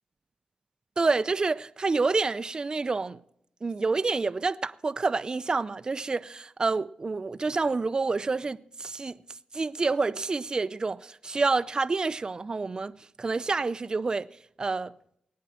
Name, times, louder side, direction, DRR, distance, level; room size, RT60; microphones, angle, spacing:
voice 1, 1.0-3.2 3.6-9.1 9.5-14.3 14.6-14.9, right 3 dB, 35° right, 0.5 m, -28 dB
21.0 x 9.6 x 4.3 m
wide cardioid pair, 95°, 2 cm